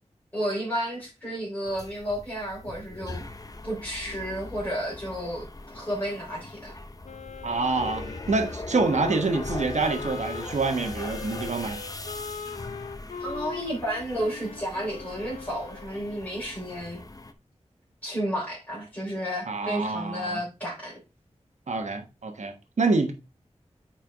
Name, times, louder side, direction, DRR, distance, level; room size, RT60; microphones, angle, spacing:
voice 1, 0.3-3.2 3.6-6.7 13.2-17.0 18.0-21.0, equal, 15° left, 3.9 m, -32 dB
sound 1, 1.6-17.3, left 2 dB, 30° left, 0.7 m, -40 dB
Wind instrument woodwind instrument, 7.0-15.9, left 5 dB, 75° left, 0.6 m, -40 dB
voice 2, 7.4-11.8 19.5-20.4 21.7-23.1, right 3 dB, 75° right, 1.3 m, -26 dB
8.9 x 4.6 x 3.5 m
wide cardioid pair, 85°, 12 cm